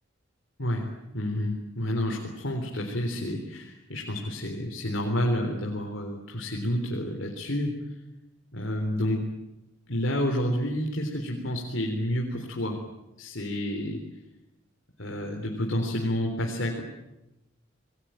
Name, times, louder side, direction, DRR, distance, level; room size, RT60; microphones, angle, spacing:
voice 1, 0.6-7.7 8.5-9.2 9.9-12.8 13.2-14.0 15.0-16.8, left 1 dB, 70° left, 1 dB, 3.8 m, -29 dB
28.0 x 21.0 x 9.1 m, 0.96 s
head